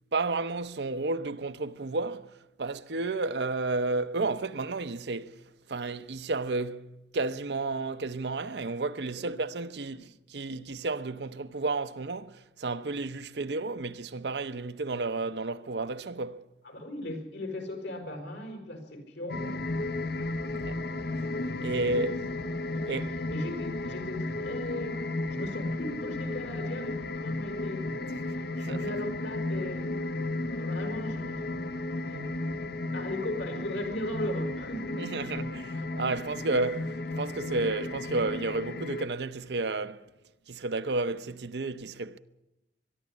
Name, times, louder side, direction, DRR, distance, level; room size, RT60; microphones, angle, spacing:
voice 1, 0.1-5.4 5.7-6.9 7.1-16.4 20.5-20.8 21.6-22.2 22.9-23.2 28.7-28.9 35.0-40.0 40.5-42.2, right 3 dB, 70° right, 0.8 m, -32 dB
voice 2, 16.6-19.8 22.7-23.0 23.3-30.0 30.5-31.6 32.1-32.3 32.9-35.2, left 1 dB, 80° left, 5.3 m, -38 dB
sound 1, 19.3-39.1, left 2 dB, 60° left, 0.9 m, -34 dB
22.5 x 12.0 x 9.8 m
head